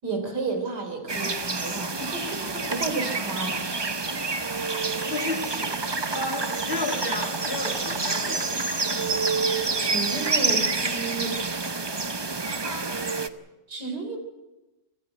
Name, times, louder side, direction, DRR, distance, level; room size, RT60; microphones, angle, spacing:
voice 1, 0.0-3.7 9.8-11.4 12.4-13.0 13.7-14.2, right 3 dB, 70° right, 4 dB, 4.4 m, -32 dB
sound 1, 1.1-13.3, right 3 dB, 35° right, 0.4 m, -28 dB
voice 2, 5.1-5.8 6.1-8.7, left 2 dB, 30° left, 3 dB, 2.7 m, -32 dB
24.0 x 14.5 x 9.2 m, 1.0 s
omnidirectional pair, 1.8 m